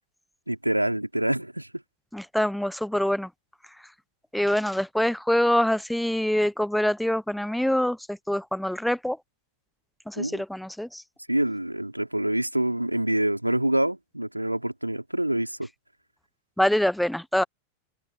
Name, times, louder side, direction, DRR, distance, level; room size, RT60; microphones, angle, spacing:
voice 1, 0.5-1.7 10.2-10.4 11.3-15.6, right 1 dB, 85° right, 3.9 m, -26 dB
voice 2, 2.1-3.3 4.3-9.2 10.1-11.0 16.6-17.4, left 1 dB, ahead, 0.9 m, -25 dB
figure-of-eight pair, 90°, 0 cm